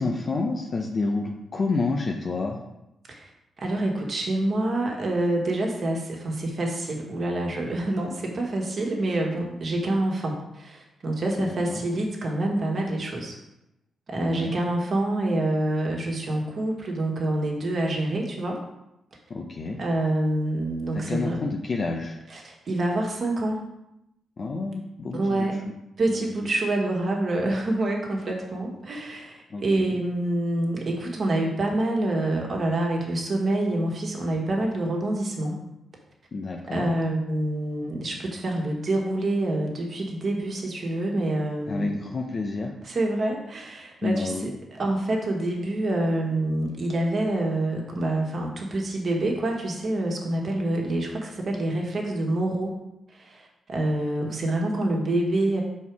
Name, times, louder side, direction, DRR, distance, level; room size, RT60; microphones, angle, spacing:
voice 1, 0.0-2.6 11.4-11.8 14.2-14.6 19.3-19.8 20.9-22.2 24.4-25.5 26.1-26.3 29.5-30.0 36.3-36.9 41.7-42.7 44.0-44.5, left 3 dB, 50° left, 1 dB, 0.6 m, -29 dB
voice 2, 3.6-13.4 14.1-18.6 19.8-21.4 22.3-23.6 25.1-25.6 26.0-35.6 36.7-41.9 42.9-44.3 44.8-52.8 53.1-55.6, right 1 dB, 55° right, 0 dB, 1.5 m, -27 dB
5.5 x 4.2 x 4.7 m, 0.88 s
cardioid pair, 70°, 0 cm